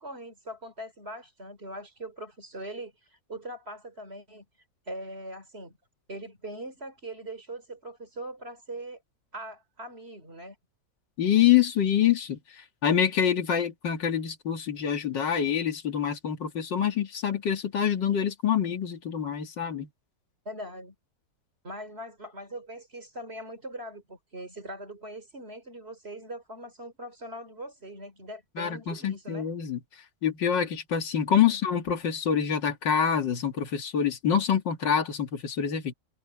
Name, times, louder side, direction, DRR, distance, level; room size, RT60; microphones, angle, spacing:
voice 1, 0.0-2.9 3.3-4.5 4.9-5.8 6.1-9.0 9.3-10.6 20.5-21.0 21.6-29.4 31.4-31.6, right 1 dB, 35° right, 3.6 m, -41 dB
voice 2, 11.2-19.9 28.6-29.8 30.2-35.9, left 8 dB, 80° left, 2.4 m, -26 dB
omnidirectional pair, 1.9 m